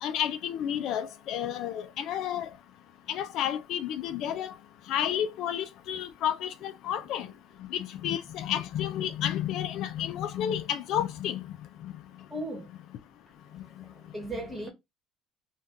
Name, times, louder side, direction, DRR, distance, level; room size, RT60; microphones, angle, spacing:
voice 1, 0.0-2.5 3.1-4.5 4.9-7.3 7.7-11.4 11.8-11.9, left 10 dB, 65° left, 0.3 m, -31 dB
voice 2, 12.3-12.7 13.8-14.7, right 1 dB, 10° right, 1.3 m, -36 dB
2.6 x 2.3 x 3.4 m
cardioid pair, 120°, 0 cm